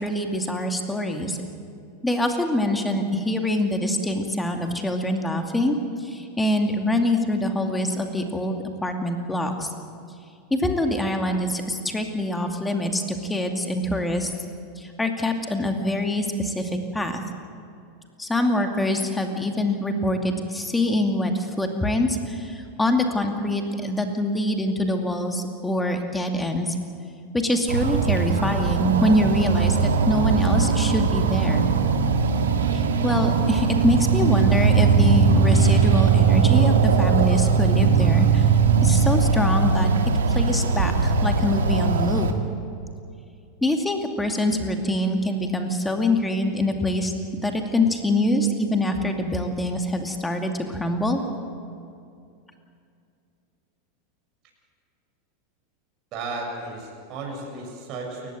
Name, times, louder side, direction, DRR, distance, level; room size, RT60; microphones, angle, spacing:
voice 1, 0.0-1.4 2.0-9.7 10.5-14.3 14.8-17.2 18.2-26.8 27.3-31.6 32.7-38.5 38.8-39.9 40.3-42.3 43.6-51.2, left 1 dB, 10° left, 4 dB, 2.4 m, -24 dB
sound 1, 27.7-42.3, right 5 dB, 70° right, 1.9 m, -20 dB
voice 2, 56.1-58.4, right 3 dB, 40° right, 0 dB, 6.9 m, -34 dB
29.0 x 15.0 x 7.7 m, 2.4 s
figure-of-eight pair, 85°, 0 cm